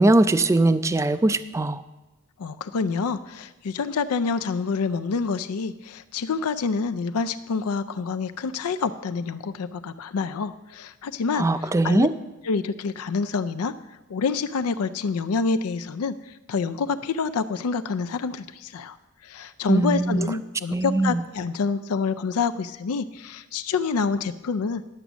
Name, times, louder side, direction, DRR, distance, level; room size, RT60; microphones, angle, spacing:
voice 1, 0.0-1.8 11.4-12.1 19.7-20.3 20.7-21.2, right 2 dB, 15° right, 12 dB, 0.4 m, -20 dB
voice 2, 2.4-12.1 12.4-13.7 14.1-19.0 19.2-24.8, left 5 dB, 75° left, 12 dB, 0.4 m, -27 dB
11.0 x 8.0 x 6.1 m, 1.0 s
head